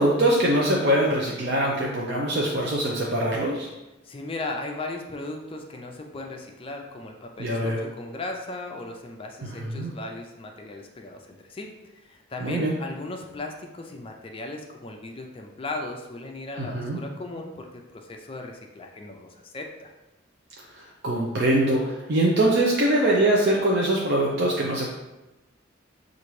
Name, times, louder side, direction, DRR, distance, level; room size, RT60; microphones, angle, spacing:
voice 1, 0.0-3.7 7.4-7.8 9.4-9.9 12.4-12.7 16.6-17.0 20.7-24.9, right 1 dB, 55° right, -3 dB, 0.6 m, -23 dB
voice 2, 4.0-19.9, left 2 dB, 30° left, 2 dB, 0.4 m, -37 dB
6.8 x 2.5 x 3.1 m, 1.0 s
head